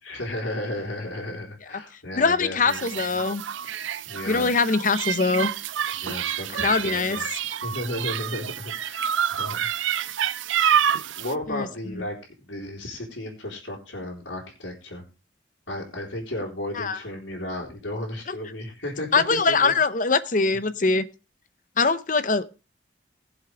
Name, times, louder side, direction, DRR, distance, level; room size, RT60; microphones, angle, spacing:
voice 1, 0.0-3.2 4.1-4.5 6.0-7.2 7.6-9.7 11.2-15.1 15.7-19.7, left 1 dB, 80° left, -4 dB, 3.8 m, -34 dB
voice 2, 2.2-3.4 4.3-5.5 6.6-7.2 11.5-11.7 16.8-17.0 19.1-21.1 21.8-22.4, left 4 dB, 45° left, 14 dB, 0.7 m, -22 dB
sound 1, 2.7-11.3, right 9 dB, 90° right, 0.5 m, -28 dB
20.5 x 7.4 x 3.4 m, 0.31 s
head